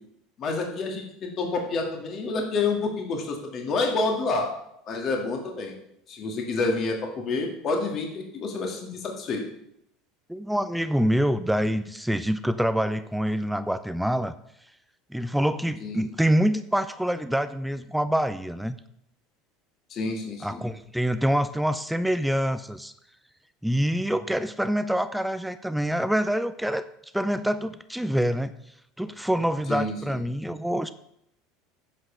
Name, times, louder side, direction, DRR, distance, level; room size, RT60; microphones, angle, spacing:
voice 1, 0.4-4.5 4.9-5.7 6.1-9.4 15.8-16.1 19.9-20.6 29.7-30.1, left 3 dB, 45° left, 2 dB, 2.0 m, -28 dB
voice 2, 10.3-14.3 15.1-18.8 20.4-22.9 23.6-26.9 27.1-28.5 29.0-30.9, equal, 5° right, 12 dB, 0.5 m, -26 dB
9.7 x 5.3 x 6.8 m, 0.77 s
hypercardioid pair, 85°, 0 cm